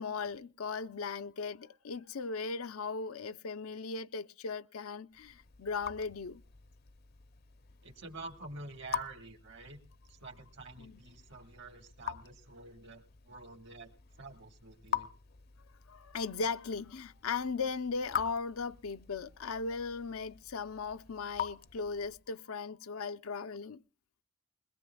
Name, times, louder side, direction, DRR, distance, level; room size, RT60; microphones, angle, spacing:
voice 1, 0.0-6.4 10.8-11.0 15.9-23.8, left 4 dB, 85° left, 0.6 m, -37 dB
Raindrop / Drip, 5.1-22.3, left 8 dB, 45° left, 0.6 m, -45 dB
voice 2, 7.8-9.8 10.1-13.9 14.2-15.1, right 3 dB, 55° right, 1.7 m, -48 dB
21.5 x 21.0 x 2.3 m
head